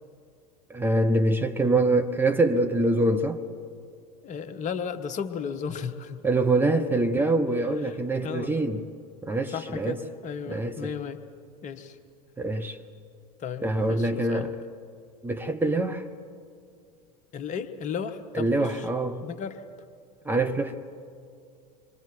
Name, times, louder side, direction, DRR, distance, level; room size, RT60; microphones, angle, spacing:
voice 1, 0.7-3.4 6.2-8.8 9.2-10.0 10.5-10.9 12.4-12.8 13.6-14.5 15.2-16.1 18.3-19.2 20.3-20.7, right 2 dB, 10° right, 0.9 m, -24 dB
voice 2, 4.2-6.2 7.8-8.5 9.5-11.2 11.6-12.0 13.4-14.5 17.3-18.9 19.2-19.6, left 6 dB, 35° left, 1.2 m, -34 dB
26.5 x 23.0 x 4.6 m
figure-of-eight pair, 80°, 21 cm